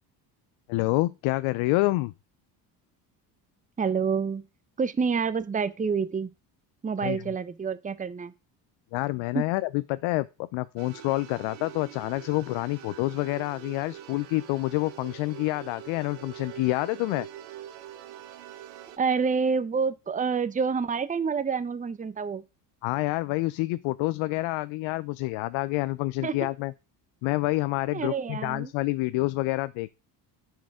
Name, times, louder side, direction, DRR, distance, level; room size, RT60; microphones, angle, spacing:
voice 1, 0.7-2.1 7.0-7.3 8.9-17.3 22.8-26.7 27.2-29.9, left 20 dB, 70° left, 0.6 m, -28 dB
voice 2, 3.8-4.4 4.8-6.3 6.8-8.3 9.3-9.4 19.0-22.4 26.2-26.4 27.9-28.7, right 5 dB, 15° right, 0.7 m, -27 dB
sound 1, 10.8-19.0, right 11 dB, 85° right, 1.1 m, -44 dB
10.0 x 4.7 x 4.8 m
supercardioid pair, 70°, 49 cm